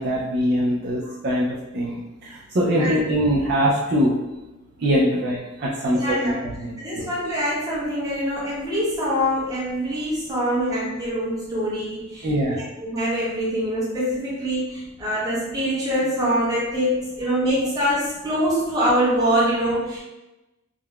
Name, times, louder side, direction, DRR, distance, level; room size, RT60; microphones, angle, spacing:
voice 1, 0.0-4.1 4.8-7.0 12.2-12.6, equal, 50° right, -5 dB, 0.4 m, -23 dB
voice 2, 5.8-6.4 6.8-20.0, equal, 15° right, -7 dB, 0.9 m, -24 dB
3.6 x 2.1 x 2.2 m, 0.99 s
head